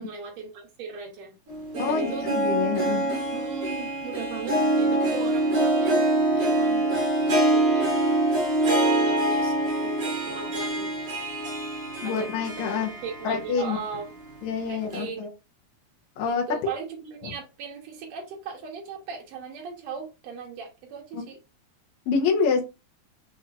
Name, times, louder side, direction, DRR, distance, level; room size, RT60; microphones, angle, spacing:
voice 1, 0.0-1.3 1.9-2.3 3.3-7.9 8.6-9.6 9.8-11.1 12.0-12.3 12.6-14.1 14.7-15.2 16.3-21.4, right 5 dB, 85° right, 1.5 m, -38 dB
Harp, 1.5-13.6 14.0-14.1 14.9-15.0, right 1 dB, 60° right, 0.9 m, -25 dB
voice 2, 1.8-3.0 12.0-12.9 13.2-13.8 14.4-15.3 16.2-16.5 17.2-17.3 21.1-21.2 22.1-22.6, left 5 dB, 70° left, 1.9 m, -26 dB
5.9 x 3.1 x 2.4 m
omnidirectional pair, 4.2 m